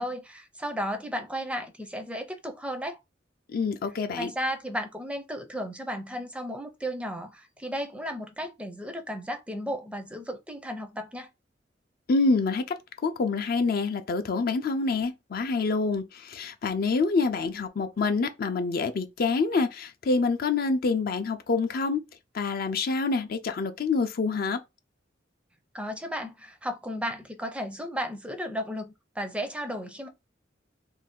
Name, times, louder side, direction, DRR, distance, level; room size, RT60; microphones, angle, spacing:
voice 1, 0.0-3.0 4.2-11.3 25.7-30.1, equal, 5° right, 0.4 m, -34 dB
voice 2, 3.5-4.3 12.1-22.0 22.3-24.6, left 4 dB, 55° left, 0.4 m, -27 dB
2.6 x 2.4 x 3.6 m
head